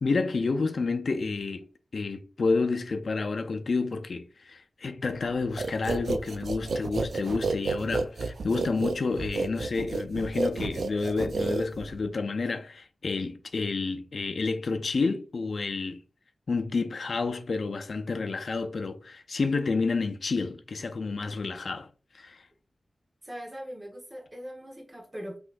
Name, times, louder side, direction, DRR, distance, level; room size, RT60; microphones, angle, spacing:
voice 1, 0.0-1.7 1.9-16.0 16.5-21.9 22.1-22.4, left 4 dB, 65° left, 0.5 m, -29 dB
sound 1, 5.6-12.1, right 3 dB, 85° right, 0.4 m, -31 dB
voice 2, 23.2-25.4, equal, 25° right, 1.3 m, -41 dB
5.7 x 3.1 x 2.5 m
wide cardioid pair, 95°, 0 cm